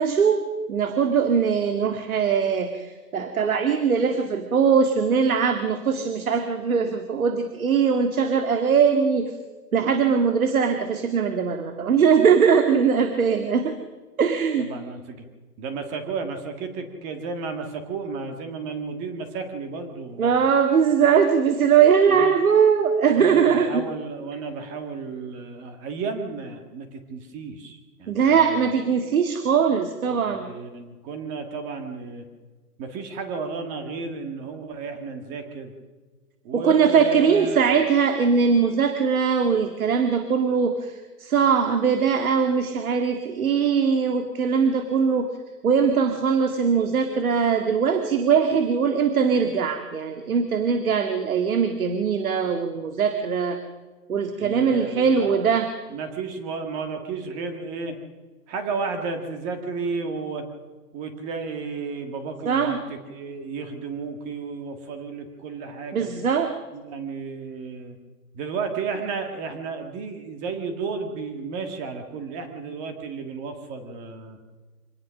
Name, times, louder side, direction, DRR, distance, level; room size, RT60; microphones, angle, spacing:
voice 1, 0.0-9.3 9.7-13.7 14.2-14.7 20.2-23.8 28.1-30.5 36.5-45.3 45.6-53.6 54.1-55.7 62.5-62.8 65.9-66.5, right 6 dB, 60° right, 6 dB, 2.1 m, -21 dB
voice 2, 14.6-15.2 15.6-20.4 22.1-22.3 23.1-28.7 30.1-32.3 32.8-35.7 36.4-37.7 54.4-58.0 58.5-60.5 60.9-66.1 66.7-68.0 68.3-74.4, right 4 dB, 15° right, 6 dB, 1.7 m, -33 dB
25.5 x 19.0 x 6.3 m, 1.3 s
hypercardioid pair, 165°, 47 cm